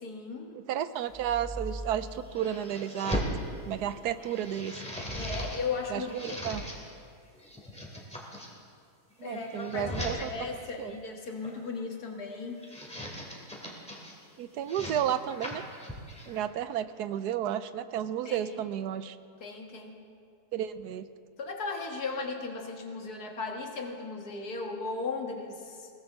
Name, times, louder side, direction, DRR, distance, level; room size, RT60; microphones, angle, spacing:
voice 1, 0.0-0.6 5.1-6.7 9.2-12.7 18.2-18.6 19.4-19.9 21.4-25.9, left 4 dB, 70° left, 2 dB, 2.1 m, -36 dB
voice 2, 0.5-3.2 3.6-4.8 5.9-6.6 9.2-10.3 10.8-11.0 14.4-15.6 16.3-19.2 20.5-21.1, right 10 dB, 80° right, 13 dB, 1.2 m, -32 dB
sound 1, 1.1-3.4 3.9-5.6 5.9-6.8 7.3-8.5 9.1-10.1 11.2-11.7 12.4-14.1 14.6-16.4, equal, 5° left, 2.4 m, -38 dB
21.5 x 17.5 x 3.7 m, 2.3 s
omnidirectional pair, 1.7 m